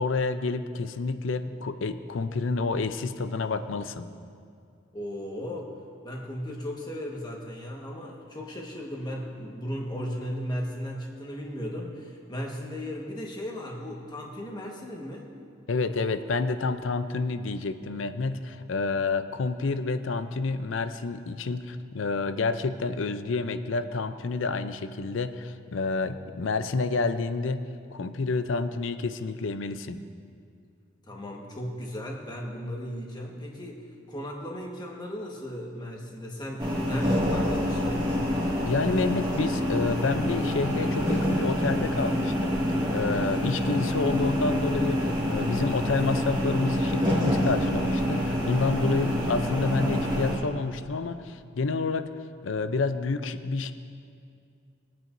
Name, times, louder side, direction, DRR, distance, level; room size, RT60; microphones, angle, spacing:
voice 1, 0.0-4.1 15.7-27.6 27.9-30.0 38.7-42.6 42.9-52.1 52.4-53.7, left 3 dB, 75° left, 10 dB, 0.5 m, -29 dB
voice 2, 4.9-5.8 6.0-15.3 31.1-38.1, equal, 20° left, -1 dB, 1.4 m, -36 dB
sound 1, 36.6-50.4, equal, 20° right, 1.8 m, -27 dB
22.0 x 9.0 x 2.6 m, 2.4 s
head